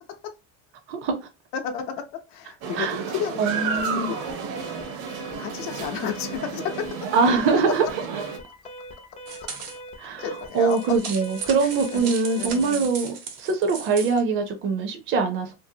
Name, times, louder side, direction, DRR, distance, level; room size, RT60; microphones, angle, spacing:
voice 1, 1.5-4.4 5.4-7.1 9.1-9.5 10.2-11.0 11.6-12.9 13.4-13.5, left 8 dB, 85° left, 0.7 m, -33 dB
sound 1, 2.6-8.4, right 6 dB, 65° right, 0.7 m, -32 dB
voice 2, 3.4-4.1 7.1-7.9 10.0-10.2 10.5-15.5, right 4 dB, 40° right, 0.5 m, -23 dB
Alarm, 3.5-12.7, equal, 20° left, 0.3 m, -42 dB
sound 2, 9.3-9.8 10.5-14.2, right 6 dB, 90° right, 1.0 m, -36 dB
2.7 x 2.6 x 2.6 m
cardioid pair, 165°, 33 cm